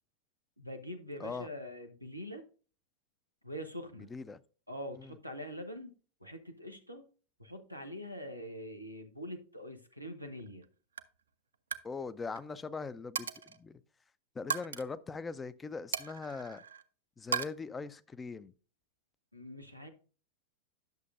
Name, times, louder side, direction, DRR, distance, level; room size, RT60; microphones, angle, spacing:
voice 1, 0.6-2.4 3.4-4.1 4.7-5.9 6.2-7.0 7.4-10.6 19.3-19.9, equal, 90° left, 1.0 m, -44 dB
Coin (dropping), 10.4-10.7 11.0-11.2 11.5-11.9 12.2-12.4 13.2-13.6 14.5-14.8 15.9-16.8 17.3-17.5, right 7 dB, 70° right, 0.5 m, -36 dB
voice 2, 11.8-13.8 14.4-16.6 17.2-18.5, left 4 dB, 15° left, 0.5 m, -41 dB
10.5 x 6.6 x 2.5 m
figure-of-eight pair, 90°, 0 cm